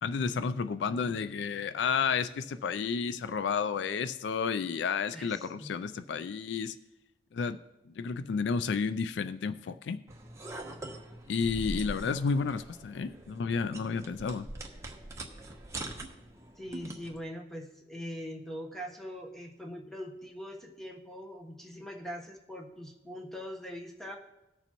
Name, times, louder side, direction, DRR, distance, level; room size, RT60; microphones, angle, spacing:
voice 1, 0.0-6.8 7.3-7.6 7.9-10.0 11.3-14.5, left 5 dB, 70° left, 13 dB, 0.3 m, -31 dB
voice 2, 5.1-5.7 16.6-24.2, equal, ahead, 1 dB, 1.1 m, -42 dB
sound 1, 10.1-17.2, right 2 dB, 15° right, 1.0 m, -43 dB
18.0 x 6.8 x 3.0 m, 0.96 s
head